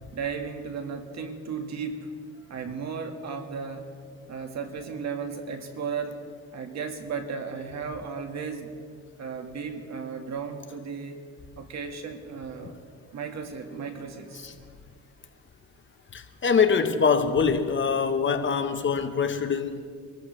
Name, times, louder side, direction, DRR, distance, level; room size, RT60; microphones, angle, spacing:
voice 1, 0.1-2.1 2.4-3.9 4.3-6.2 6.5-8.7 9.2-11.2 11.6-12.8 13.1-14.5, right 5 dB, 65° right, 5 dB, 1.8 m, -35 dB
voice 2, 16.1-19.8, left 6 dB, 40° left, 7 dB, 1.2 m, -24 dB
25.0 x 14.0 x 3.3 m, 2.1 s
cardioid pair, 90°, 30 cm